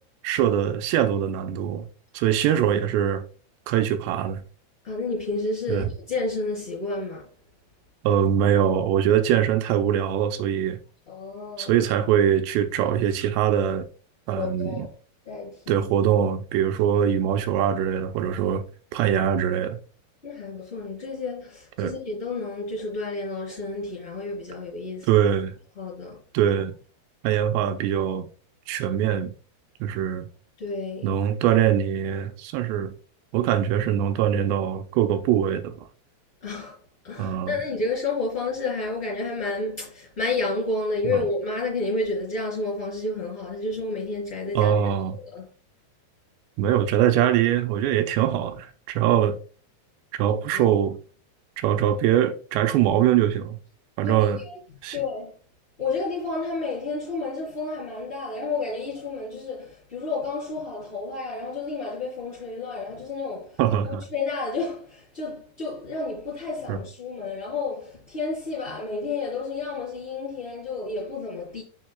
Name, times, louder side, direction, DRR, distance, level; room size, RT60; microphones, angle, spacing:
voice 1, 0.2-1.9 2.1-3.2 3.7-4.4 5.7-5.9 8.0-10.8 11.6-13.8 14.3-14.9 15.7-18.6 18.9-19.8 21.8-21.9 25.1-25.6 26.3-26.7 27.2-28.3 28.7-29.3 29.8-30.3 31.0-32.9 33.3-35.9 37.2-37.6 41.1-41.2 44.5-45.2 46.6-49.4 50.1-51.0 51.6-53.6 54.0-54.4 54.8-55.0 63.6-64.0 66.7-66.8, right 10 dB, 85° right, 2.5 m, -22 dB
voice 2, 4.8-7.3 11.1-11.7 14.4-14.9 15.2-15.8 20.2-25.1 25.8-26.2 30.6-31.2 36.4-36.8 37.0-44.7 45.2-45.4 50.3-50.7 54.0-54.6 54.9-55.3 55.8-63.6 64.1-71.6, left 3 dB, 15° left, 2.7 m, -30 dB
7.5 x 6.3 x 2.2 m
omnidirectional pair, 5.3 m